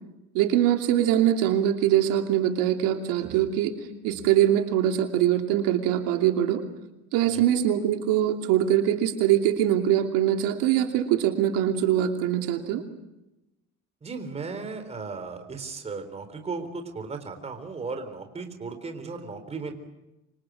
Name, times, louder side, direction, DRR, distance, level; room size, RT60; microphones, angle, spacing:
voice 1, 0.3-3.7 4.0-6.6 7.1-12.8, right 11 dB, 90° right, 4 dB, 2.8 m, -23 dB
voice 2, 14.0-19.7, right 4 dB, 20° right, 7 dB, 3.9 m, -36 dB
28.0 x 26.0 x 6.3 m, 0.94 s
cardioid pair, 155°, 32 cm